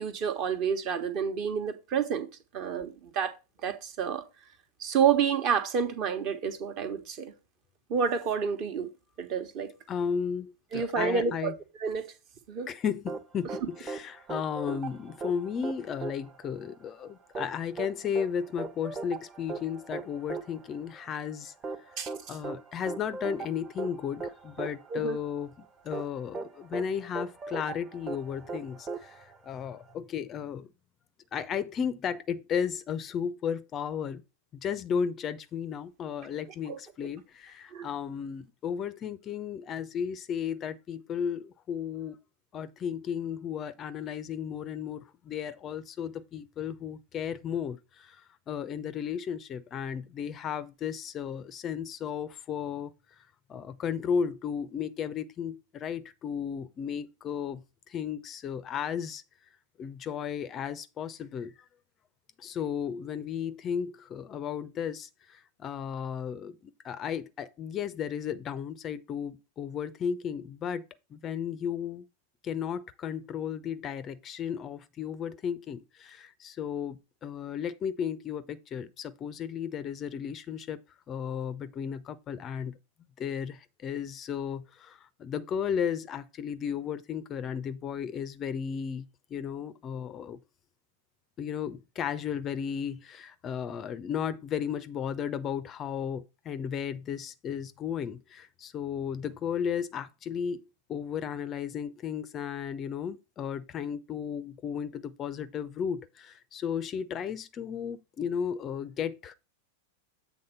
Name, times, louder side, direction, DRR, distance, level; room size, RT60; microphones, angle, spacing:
voice 1, 0.0-2.3 2.5-3.3 3.6-4.2 4.8-7.3 7.9-8.9 9.2-9.7 10.7-11.5 11.8-12.1 12.5-12.7 22.0-22.1 24.9-25.2 36.7-36.8 37.7-37.9, right 7 dB, 40° right, 1.1 m, -29 dB
voice 2, 9.9-11.6 12.7-21.5 21.9-22.0 22.3-30.7 31.3-34.2 34.5-42.2 42.5-52.9 53.5-59.2 59.8-61.7 62.4-70.8 71.1-72.1 72.4-82.7 83.2-90.4 91.4-109.3, left 7 dB, 30° left, 0.4 m, -34 dB
sound 1, 13.1-29.9, right 4 dB, 20° right, 0.8 m, -39 dB
7.8 x 3.6 x 5.5 m
figure-of-eight pair, 90°, 0 cm